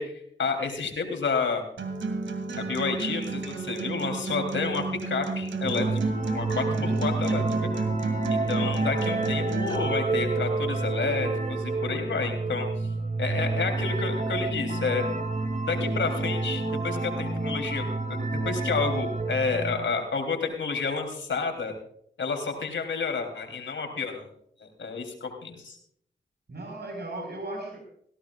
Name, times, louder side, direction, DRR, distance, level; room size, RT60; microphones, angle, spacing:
voice 1, 0.0-1.6 2.6-5.9 6.3-7.4 8.3-12.7 13.2-15.0 15.6-21.7 22.2-24.3 24.6-25.8, left 4 dB, 75° left, 4 dB, 3.4 m, -30 dB
Acoustic guitar, 1.8-9.8, right 4 dB, 75° right, 2.4 m, -32 dB
sound 1, 5.6-19.8, right 3 dB, 40° right, 2.7 m, -29 dB
voice 2, 6.6-7.3 26.5-27.8, right 1 dB, 60° right, 3 dB, 4.9 m, -37 dB
18.5 x 16.5 x 2.4 m, 0.66 s
supercardioid pair, 40°, 20 cm